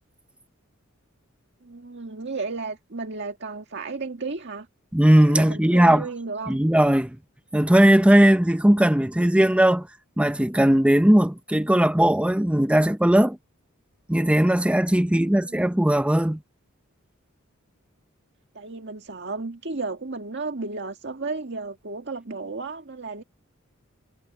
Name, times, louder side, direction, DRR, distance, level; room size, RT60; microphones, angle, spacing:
voice 1, 1.6-4.7 5.3-6.6 15.1-15.6 18.6-23.2, right 3 dB, 55° right, 1.9 m, -33 dB
voice 2, 4.9-6.1 6.5-7.2 7.5-9.9 10.2-13.4 14.1-16.4, right 1 dB, 5° right, 0.6 m, -18 dB
head